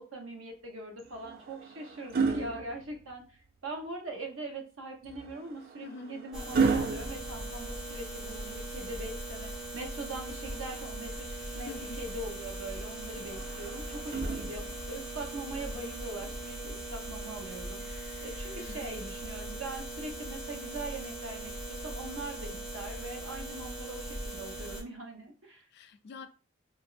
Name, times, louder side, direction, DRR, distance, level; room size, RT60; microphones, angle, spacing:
voice 1, 0.0-11.7 12.0-17.9 18.2-25.7, right 2 dB, 70° right, 0.8 m, -42 dB
sound 1, 1.0-3.5 5.0-8.2 10.0-11.2 13.1-15.0 16.2-16.4, right 4 dB, 45° right, 0.3 m, -34 dB
voice 2, 5.8-6.2 11.6-12.1 17.9-18.1 18.6-19.1 25.7-26.3, left 4 dB, 50° left, 0.3 m, -46 dB
sound 2, 6.3-24.8, right 1 dB, 5° right, 0.6 m, -40 dB
sound 3, 11.3-19.8, right 1 dB, 25° right, 0.9 m, -57 dB
2.9 x 2.5 x 2.4 m
head